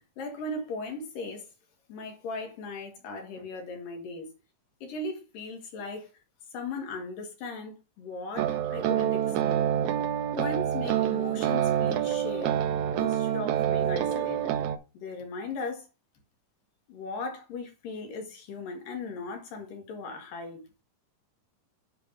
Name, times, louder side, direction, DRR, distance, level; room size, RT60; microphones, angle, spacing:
voice 1, 0.2-1.5 1.9-4.3 4.8-6.1 6.5-9.6 10.4-12.6 12.9-14.5 15.0-15.9 16.9-20.6, left 3 dB, 75° left, 3.3 m, -38 dB
sound 1, 8.4-14.8, right 10 dB, 75° right, 1.8 m, -27 dB
9.4 x 3.4 x 5.1 m
omnidirectional pair, 4.0 m